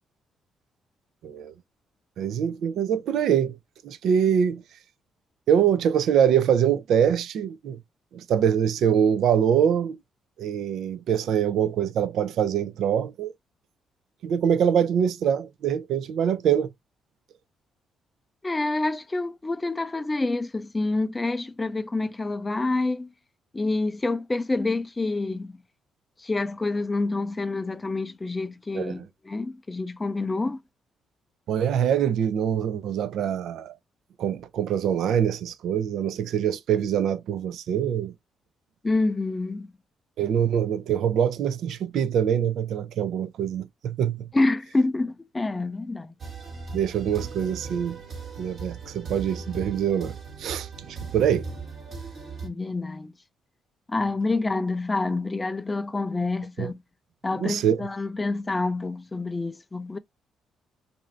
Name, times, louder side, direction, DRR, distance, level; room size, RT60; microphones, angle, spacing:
voice 1, 1.2-1.5 2.2-3.6 3.8-4.6 5.5-7.8 8.1-10.0 10.4-13.3 14.2-16.7 28.7-29.1 31.5-33.7 34.2-38.1 40.2-44.3 46.7-48.0 48.4-51.5 56.6-56.7 57.3-57.9, right 8 dB, 75° right, 0.4 m, -24 dB
voice 2, 18.4-23.1 23.5-25.6 26.2-29.0 29.3-30.6 38.8-39.7 44.3-46.1 52.4-53.1 53.9-56.8 57.2-60.0, left 2 dB, 20° left, 0.4 m, -27 dB
sound 1, 46.2-52.5, right 4 dB, 50° right, 1.3 m, -38 dB
2.6 x 2.5 x 3.0 m
cardioid pair, 90°, 0 cm